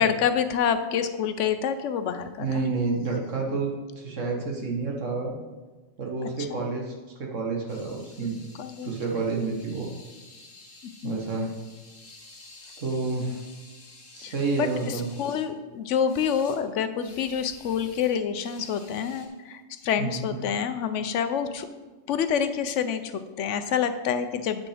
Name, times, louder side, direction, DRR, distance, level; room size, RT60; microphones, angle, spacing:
voice 1, 0.0-2.5 6.5-6.6 8.6-8.9 11.0-11.5 13.2-13.4 14.2-21.7 22.1-24.7, left 7 dB, 75° left, 10 dB, 1.0 m, -27 dB
voice 2, 2.4-5.4 6.0-6.9 7.2-8.4 8.8-9.9 11.0-11.5 12.8-13.4 14.1-15.1 20.0-20.4, right 4 dB, 85° right, 0 dB, 1.8 m, -29 dB
sound 1, 7.7-15.5 16.1-16.6 17.0-19.3, left 3 dB, 45° left, 1.5 m, -51 dB
8.6 x 6.1 x 5.0 m, 1.3 s
omnidirectional pair, 1.3 m